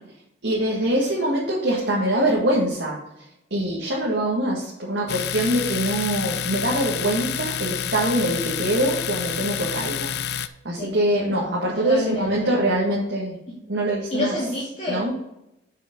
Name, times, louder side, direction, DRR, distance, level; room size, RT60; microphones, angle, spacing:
voice 1, 0.4-3.0 3.5-13.4 13.7-14.3 14.9-15.1, right 1 dB, 80° right, -4 dB, 1.8 m, -24 dB
Domestic sounds home sounds, 5.1-10.5, left 9 dB, 60° left, 0.4 m, -29 dB
voice 2, 10.8-12.6 13.5-13.6 14.1-15.0, left 1 dB, 40° left, -7 dB, 2.3 m, -29 dB
6.8 x 6.5 x 5.2 m, 0.88 s
head